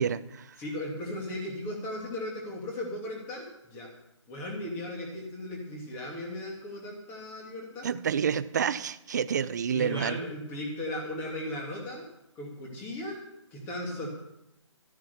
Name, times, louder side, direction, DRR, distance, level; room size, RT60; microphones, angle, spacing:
voice 1, 0.0-0.6 7.8-10.2, right 7 dB, 35° right, 14 dB, 0.5 m, -29 dB
voice 2, 0.6-3.9 4.3-7.9 9.7-12.1 12.3-13.2 13.5-14.1, left 1 dB, 15° left, 0 dB, 2.7 m, -36 dB
13.5 x 9.2 x 7.0 m, 0.85 s
hypercardioid pair, 165°, 16 cm